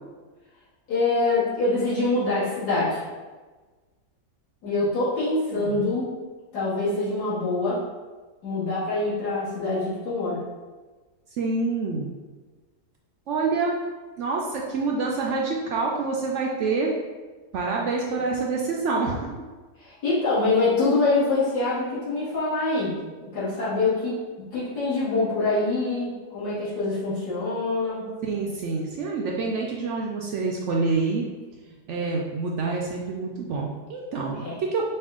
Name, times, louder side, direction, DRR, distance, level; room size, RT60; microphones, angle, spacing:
voice 1, 0.9-3.0 4.6-6.1 6.5-7.8 8.4-10.4 18.1-18.2 19.8-23.0 23.2-24.1 24.5-28.1 34.4-34.5, left 3 dB, 70° left, -10 dB, 2.3 m, -25 dB
voice 2, 5.5-5.8 11.4-12.1 13.3-13.8 14.2-16.9 17.5-19.3 28.2-31.3 31.9-34.9, right 4 dB, 75° right, -2 dB, 0.6 m, -27 dB
5.5 x 2.4 x 3.6 m, 1.3 s
omnidirectional pair, 1.8 m